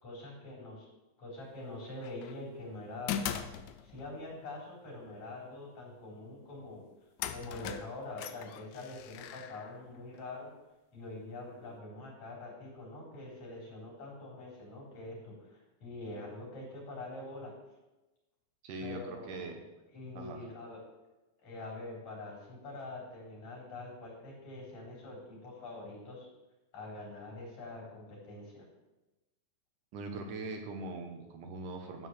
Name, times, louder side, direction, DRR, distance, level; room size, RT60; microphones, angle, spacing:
voice 1, 0.0-0.9 1.2-3.5 3.8-6.9 7.3-10.5 10.9-17.5 18.8-19.5 19.9-20.8 21.4-26.3 26.7-28.7, left 2 dB, 60° left, -3 dB, 5.0 m, -45 dB
sound 1, 2.0-2.4 3.1-4.2 6.6-6.7 7.2-10.2, left 9 dB, 80° left, 2.0 m, -40 dB
voice 2, 18.6-19.6 20.2-20.4 29.9-32.1, right 2 dB, 85° right, 4 dB, 2.9 m, -41 dB
13.0 x 4.8 x 7.3 m, 1.1 s
omnidirectional pair, 3.5 m